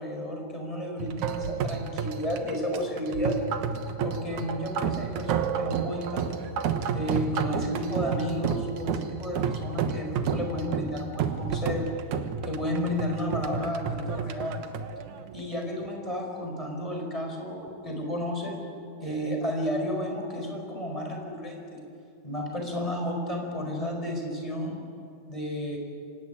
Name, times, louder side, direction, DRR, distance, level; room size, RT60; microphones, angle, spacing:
voice 1, 0.0-3.4 4.0-6.4 6.9-11.9 12.4-14.6 15.3-18.6 19.0-21.8 22.2-24.8 25.3-25.8, equal, 10° left, 1 dB, 4.7 m, -32 dB
sound 1, 1.0-15.9, right 7 dB, 65° right, 2.1 m, -31 dB
25.0 x 18.5 x 9.8 m, 2.4 s
omnidirectional pair, 4.7 m